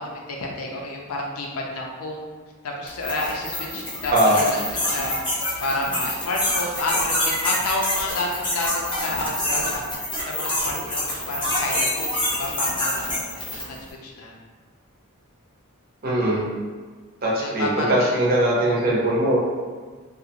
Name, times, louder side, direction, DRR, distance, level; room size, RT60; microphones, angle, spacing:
voice 1, 0.0-2.2 2.6-4.6 4.9-5.2 5.6-9.8 10.3-14.3 17.4-18.2, left 2 dB, 75° left, -1 dB, 0.5 m, -30 dB
sound 1, 2.9-13.8, left 1 dB, 20° left, 0.6 m, -26 dB
voice 2, 16.0-16.4 17.2-19.4, right 1 dB, 40° right, -4 dB, 0.5 m, -20 dB
2.4 x 2.1 x 2.8 m, 1.5 s
head